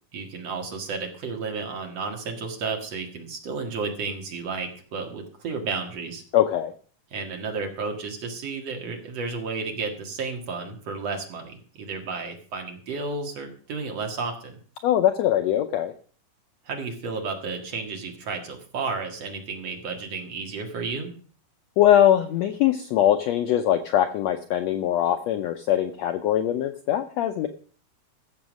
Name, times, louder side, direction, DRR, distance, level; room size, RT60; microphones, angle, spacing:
voice 1, 0.1-6.2 7.1-14.6 16.7-21.1, right 4 dB, 50° right, 3 dB, 2.8 m, -32 dB
voice 2, 6.3-6.7 14.8-15.9 21.8-27.5, left 11 dB, 85° left, 8 dB, 1.5 m, -22 dB
14.5 x 7.2 x 6.4 m, 0.44 s
omnidirectional pair, 3.9 m